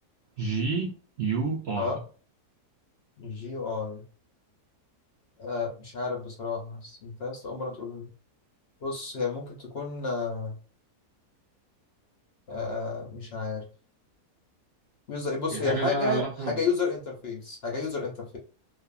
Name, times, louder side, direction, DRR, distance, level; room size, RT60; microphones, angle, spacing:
voice 1, 0.4-2.0 15.5-16.6, right 4 dB, 75° right, -1 dB, 0.5 m, -30 dB
voice 2, 3.2-4.0 5.4-8.1 8.8-10.6 12.5-13.6 15.1-18.4, left 4 dB, 60° left, 0 dB, 0.6 m, -31 dB
2.5 x 2.4 x 2.3 m, 0.40 s
omnidirectional pair, 1.7 m